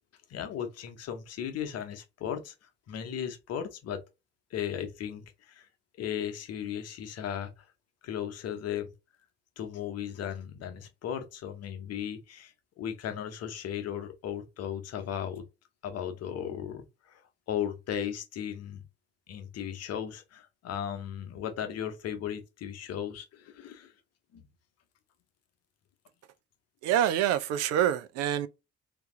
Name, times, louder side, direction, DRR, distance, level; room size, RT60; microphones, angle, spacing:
voice 1, 0.3-4.0 4.5-5.7 6.0-7.7 8.0-8.9 9.6-15.4 15.8-17.2 17.5-18.8 19.3-23.9 24.3-24.4, left 9 dB, 50° left, 0.9 m, -36 dB
voice 2, 26.8-28.5, right 10 dB, 50° right, 0.5 m, -26 dB
3.4 x 2.8 x 3.7 m
figure-of-eight pair, 40°, 32 cm